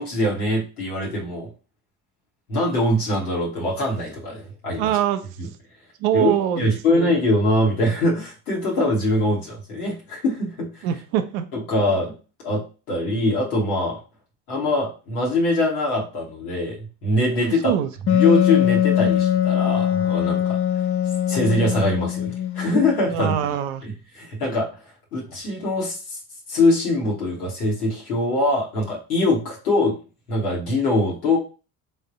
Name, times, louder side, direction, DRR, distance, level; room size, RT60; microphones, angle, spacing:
voice 1, 0.0-1.5 2.5-4.9 5.4-5.5 6.1-10.7 11.5-12.1 12.4-12.6 12.9-14.0 14.5-17.7 18.1-20.6 21.3-23.3 23.8-24.7 25.1-26.2 26.5-30.0 30.3-31.4, left 1 dB, 85° left, -3 dB, 0.9 m, -23 dB
voice 2, 4.8-5.2 6.0-7.1 10.8-11.5 17.4-17.9 23.1-23.8, right 10 dB, 70° right, 10 dB, 0.6 m, -23 dB
Wind instrument woodwind instrument, 18.1-23.5, left 10 dB, 30° left, 0.5 m, -22 dB
3.4 x 2.1 x 3.8 m, 0.34 s
hypercardioid pair, 50°, 43 cm